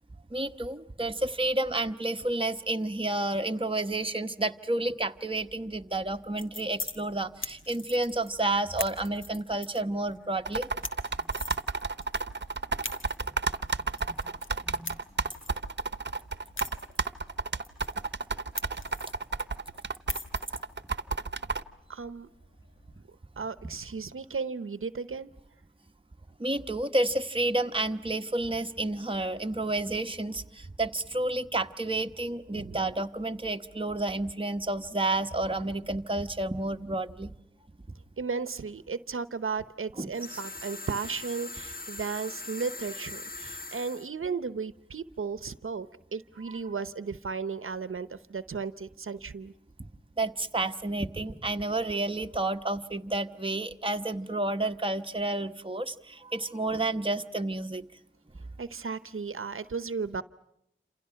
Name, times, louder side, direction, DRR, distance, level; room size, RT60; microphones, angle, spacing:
voice 1, 0.3-10.7 13.2-13.3 14.1-14.3 14.6-15.0 15.3-15.4 26.4-37.3 40.0-40.4 50.2-57.9, right 2 dB, 25° right, 5 dB, 1.2 m, -30 dB
sound 1, 6.1-23.0, left 3 dB, 70° left, 1.9 m, -44 dB
sound 2, 10.5-21.6, right 4 dB, 60° right, 1.0 m, -31 dB
voice 2, 21.9-22.3 23.4-25.3 32.5-32.9 38.2-45.9 46.1-49.5 58.6-60.2, right 5 dB, 85° right, 14 dB, 0.9 m, -35 dB
sound 3, 40.1-44.1, left 3 dB, 45° left, 1.6 m, -41 dB
28.5 x 27.5 x 5.7 m, 0.78 s
wide cardioid pair, 75°, 21 cm